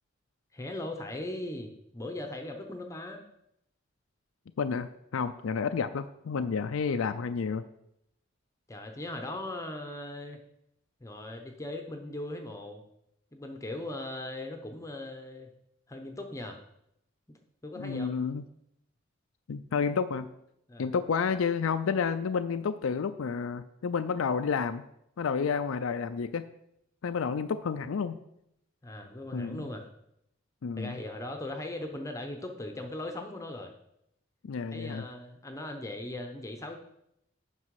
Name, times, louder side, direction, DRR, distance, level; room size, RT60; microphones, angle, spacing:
voice 1, 0.5-3.2 8.7-10.4 11.0-12.8 13.3-15.5 15.9-16.6 17.3-18.1 20.7-20.9 28.8-29.9 30.8-33.7 34.7-36.8, left 1 dB, 15° left, 4 dB, 0.8 m, -39 dB
voice 2, 4.6-7.6 17.8-18.4 19.5-20.3 20.8-24.8 25.2-26.5 27.0-28.2 29.3-29.7 30.6-31.0 34.4-35.0, left 5 dB, 85° left, 10 dB, 0.4 m, -30 dB
9.7 x 6.1 x 4.7 m, 0.78 s
head